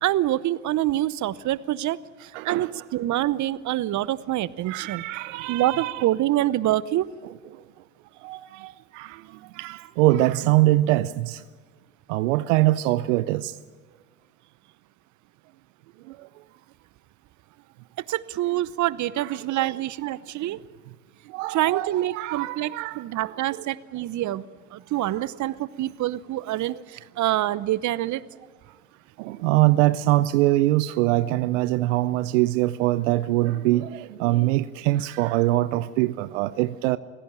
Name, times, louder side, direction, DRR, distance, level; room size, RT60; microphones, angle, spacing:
voice 1, 0.0-5.0 5.5-7.1 18.1-20.6 21.5-24.4 24.7-28.2, right 14 dB, 50° right, 0.9 m, -26 dB
voice 2, 2.3-2.8 4.7-6.1 7.2-7.6 8.2-11.4 12.1-13.6 16.1-16.3 19.2-19.8 21.3-23.4 25.1-25.3 29.2-37.0, right 17 dB, 75° right, 0.6 m, -24 dB
24.5 x 16.5 x 9.0 m
hypercardioid pair, 60°, 37 cm